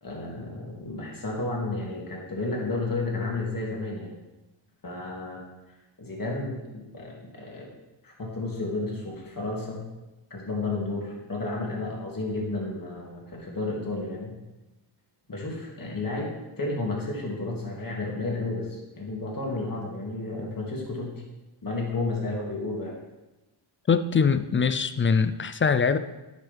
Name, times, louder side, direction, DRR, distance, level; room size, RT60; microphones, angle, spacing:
voice 1, 0.0-4.1 4.8-5.4 6.0-7.7 8.0-9.8 10.3-14.3 15.3-21.1 21.6-23.0, left 2 dB, 40° left, -2 dB, 2.5 m, -32 dB
voice 2, 23.9-26.0, left 5 dB, 25° left, 12 dB, 0.4 m, -22 dB
9.9 x 6.6 x 3.5 m, 1.0 s
cardioid pair, 80°, 50 cm